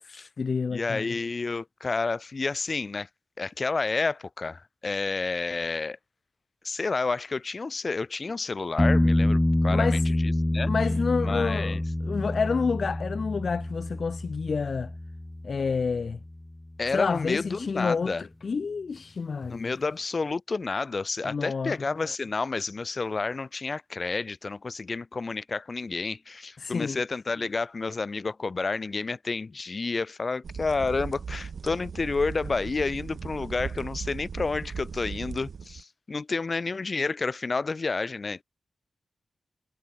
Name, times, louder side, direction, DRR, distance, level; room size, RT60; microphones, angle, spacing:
voice 1, 0.1-1.1 9.7-10.0 10.7-14.9 15.4-16.2 16.9-18.1 18.4-19.7 21.2-21.8 26.6-27.0, left 5 dB, 55° left, 1.0 m, -29 dB
voice 2, 0.7-3.1 3.4-6.0 6.6-10.7 11.2-11.8 16.8-18.3 19.5-38.4, left 4 dB, 40° left, 3.0 m, -30 dB
sound 1, 8.8-16.4 19.4-19.5, left 1 dB, 10° left, 2.7 m, -27 dB
sound 2, 30.4-35.8, right 6 dB, 65° right, 3.8 m, -38 dB
wide cardioid pair, 130°, 0 cm